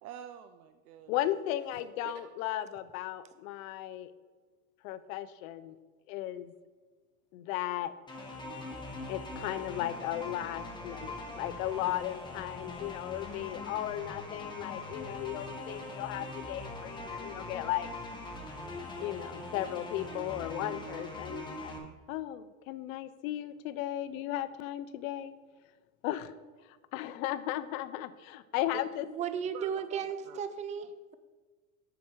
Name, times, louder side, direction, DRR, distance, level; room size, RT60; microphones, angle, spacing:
voice 1, 0.0-1.1 1.7-2.1 29.5-30.4 30.8-30.9, right 10 dB, 75° right, 9 dB, 0.6 m, -48 dB
voice 2, 1.1-4.1 4.8-5.8 6.1-6.5 7.3-7.9 9.1-17.9 19.0-21.7 22.1-25.4 26.0-26.3 26.9-29.1, left 13 dB, 65° left, 14 dB, 0.7 m, -36 dB
sound 1, 8.1-21.8, left 2 dB, 10° left, 1.5 m, -42 dB
voice 3, 29.1-31.1, right 7 dB, 20° right, 11 dB, 0.4 m, -35 dB
7.2 x 6.1 x 4.6 m, 1.4 s
hypercardioid pair, 105°, 44 cm